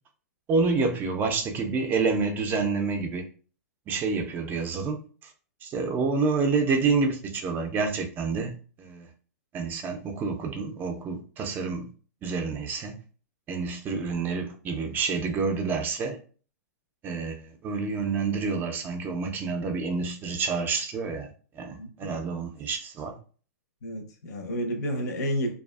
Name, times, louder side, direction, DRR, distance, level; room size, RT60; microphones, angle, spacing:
voice 1, 0.5-3.2 3.9-5.0 5.6-9.1 9.5-11.9 12.2-13.0 13.5-16.2 17.0-21.3 21.6-23.2, right 4 dB, 20° right, 0.4 m, -28 dB
voice 2, 21.8-22.2 23.8-25.5, equal, 75° left, 0.7 m, -31 dB
2.5 x 2.3 x 2.3 m
hypercardioid pair, 145°, 9 cm